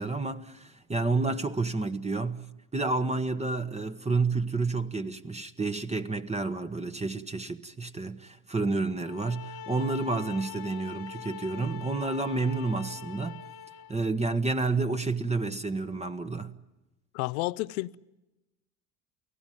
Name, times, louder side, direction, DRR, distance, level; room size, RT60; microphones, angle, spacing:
voice 1, 0.0-2.4 2.7-13.4 13.9-16.5, right 3 dB, 15° right, 1.3 m, -30 dB
sound 1, 9.0-14.0, left 9 dB, 55° left, 1.5 m, -43 dB
voice 2, 17.1-18.0, left 20 dB, 75° left, 0.8 m, -31 dB
29.5 x 17.5 x 9.3 m
hypercardioid pair, 80°, 44 cm